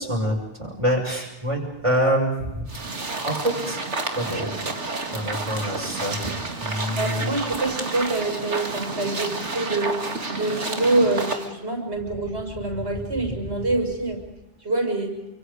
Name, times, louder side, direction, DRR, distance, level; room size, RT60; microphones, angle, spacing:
voice 1, 0.0-2.5 3.2-3.8 4.2-4.7 5.1-6.3 6.6-7.3 13.2-13.3, equal, 25° right, -1 dB, 6.0 m, -26 dB
sound 1, 2.7-11.5, right 3 dB, 85° right, 2.6 m, -30 dB
voice 2, 7.0-14.2 14.6-15.2, right 2 dB, 70° right, 2 dB, 6.6 m, -26 dB
29.0 x 25.5 x 5.1 m, 0.95 s
omnidirectional pair, 1.2 m